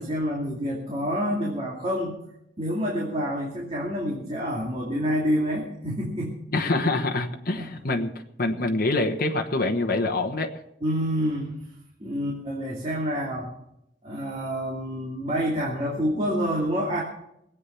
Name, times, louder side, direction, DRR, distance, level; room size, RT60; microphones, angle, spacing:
voice 1, 0.0-2.2 2.6-6.4 7.5-7.8 10.8-11.5 12.0-13.5 14.0-17.0, equal, 35° right, -3 dB, 2.5 m, -28 dB
voice 2, 6.5-8.1 8.4-10.5, left 2 dB, 50° left, 3 dB, 1.2 m, -25 dB
21.0 x 8.5 x 5.7 m, 0.80 s
head